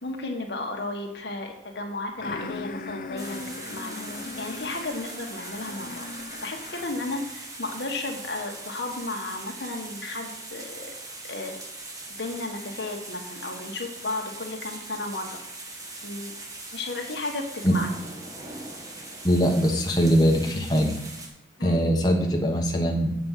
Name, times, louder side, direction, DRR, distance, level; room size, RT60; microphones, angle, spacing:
voice 1, 0.0-4.0 4.4-6.0 6.4-10.9 11.2-11.6 12.2-15.4 16.0-16.3 16.7-17.9 21.6-21.8, left 2 dB, 75° left, 3 dB, 1.5 m, -34 dB
sound 1, 2.2-7.1, left 3 dB, 50° left, 0.6 m, -38 dB
sound 2, 3.2-21.3, right 2 dB, 20° right, 1.5 m, -41 dB
voice 2, 19.2-20.9 21.6-23.1, equal, 25° left, 0 dB, 1.2 m, -22 dB
7.8 x 5.3 x 7.4 m, 0.83 s
head